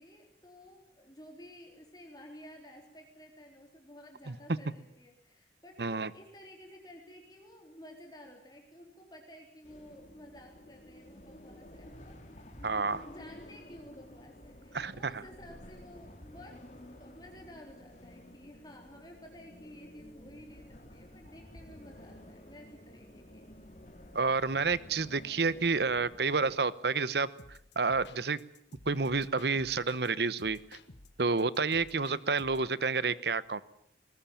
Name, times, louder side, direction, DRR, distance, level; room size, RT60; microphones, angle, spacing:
voice 1, 0.0-12.3 13.0-16.7 16.9-23.5, equal, 20° left, 1 dB, 3.8 m, -53 dB
voice 2, 5.8-6.1 12.6-13.1 14.7-15.2 24.1-27.3 27.8-28.4 28.9-30.6 31.2-33.6, right 4 dB, 70° right, 17 dB, 1.0 m, -29 dB
sound 1, 9.6-26.6, left 1 dB, 40° left, 3.2 m, -52 dB
sound 2, 27.4-30.1 30.4-32.7, left 2 dB, 85° left, 1.5 m, -54 dB
21.5 x 20.0 x 8.9 m, 0.73 s
head